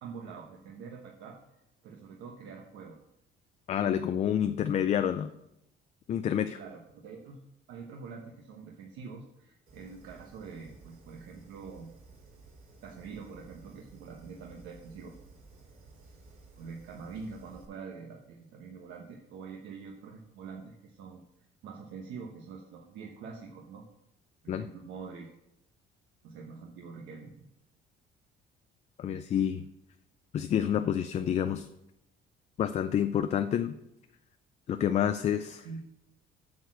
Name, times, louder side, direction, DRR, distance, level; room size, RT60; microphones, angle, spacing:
voice 1, 0.0-1.4 1.8-3.0 6.5-7.4 7.7-11.9 12.8-15.1 16.5-21.2 21.6-23.9 24.4-25.3 26.2-27.5 35.6-35.8, right 5 dB, 80° right, 0 dB, 1.1 m, -45 dB
voice 2, 3.7-5.3 6.1-6.6 24.5-24.7 29.0-29.7 30.3-31.7 32.6-33.8 34.7-35.7, left 9 dB, 35° left, 9 dB, 0.4 m, -28 dB
Fire, 9.7-17.7, right 3 dB, 50° right, 4.0 m, -55 dB
8.1 x 6.6 x 6.2 m, 0.85 s
cardioid pair, 150°, 19 cm